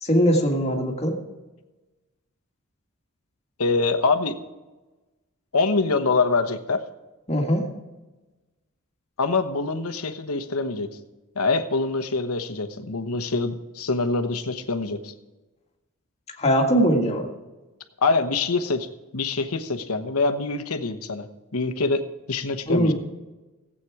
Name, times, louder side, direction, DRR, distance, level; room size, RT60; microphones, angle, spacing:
voice 1, 0.0-1.2 7.3-7.7 16.4-17.3 22.7-22.9, equal, 30° left, 1 dB, 1.8 m, -21 dB
voice 2, 3.6-4.4 5.5-6.8 9.2-10.9 11.3-15.1 18.0-18.9 19.1-22.9, left 3 dB, 90° left, 9 dB, 1.0 m, -25 dB
16.5 x 8.5 x 4.8 m, 1.1 s
head